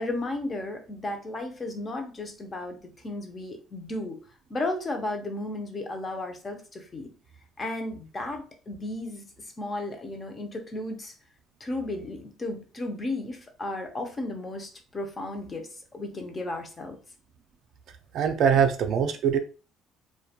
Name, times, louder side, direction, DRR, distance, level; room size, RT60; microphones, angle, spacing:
voice 1, 0.0-4.2 4.5-7.1 7.6-11.1 11.6-17.0, left 2 dB, 20° left, 5 dB, 0.4 m, -34 dB
voice 2, 18.1-19.4, right 7 dB, 55° right, 6 dB, 0.3 m, -22 dB
2.3 x 2.1 x 2.7 m, 0.36 s
cardioid pair, 150°, 0 cm